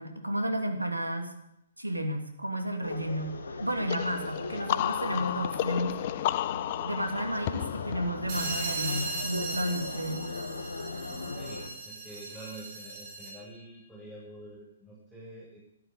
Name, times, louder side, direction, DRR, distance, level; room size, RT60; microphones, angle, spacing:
voice 1, 0.0-1.3 1.8-5.9 6.8-10.2, equal, 85° right, 5 dB, 2.9 m, -32 dB
sound 1, 2.8-11.7, left 3 dB, 70° left, 2.2 m, -39 dB
sound 2, 3.9-9.4, left 14 dB, 40° left, 0.5 m, -33 dB
sound 3, 8.3-13.5, right 3 dB, 45° right, 5.3 m, -38 dB
voice 2, 11.0-15.6, right 1 dB, 5° right, -8 dB, 5.9 m, -47 dB
12.5 x 12.5 x 8.4 m, 0.78 s
figure-of-eight pair, 125°, 0 cm